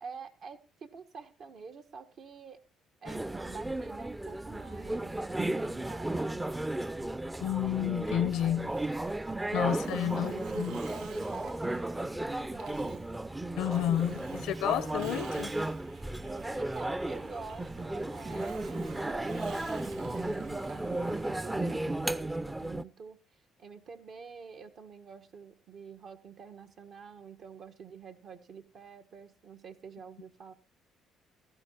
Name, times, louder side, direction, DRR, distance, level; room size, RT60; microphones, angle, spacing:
voice 1, 0.0-2.6 3.0-5.2 5.6-6.4 9.4-11.8 12.2-13.0 13.9-14.6 16.6-30.5, right 5 dB, 60° right, 1.5 m, -47 dB
sound 1, 3.1-22.8, right 1 dB, 15° right, 0.6 m, -34 dB
voice 2, 7.4-8.7 9.5-10.8 13.6-15.5, left 11 dB, 80° left, 0.8 m, -31 dB
Hiss, 8.6-22.1, right 8 dB, 80° right, 1.1 m, -53 dB
17.5 x 14.5 x 3.0 m
supercardioid pair, 80°, 0 cm